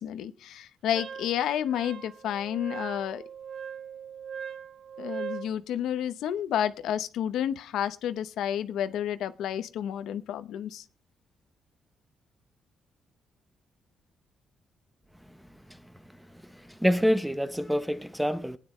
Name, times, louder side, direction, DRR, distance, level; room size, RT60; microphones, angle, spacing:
voice 1, 0.0-3.2 5.0-10.8, left 10 dB, 85° left, 0.8 m, -30 dB
Wind instrument woodwind instrument, 0.9-5.5, right 7 dB, 60° right, 1.3 m, -40 dB
voice 2, 16.5-18.6, equal, ahead, 0.7 m, -26 dB
20.5 x 9.5 x 3.1 m
cardioid pair, 120°, 0 cm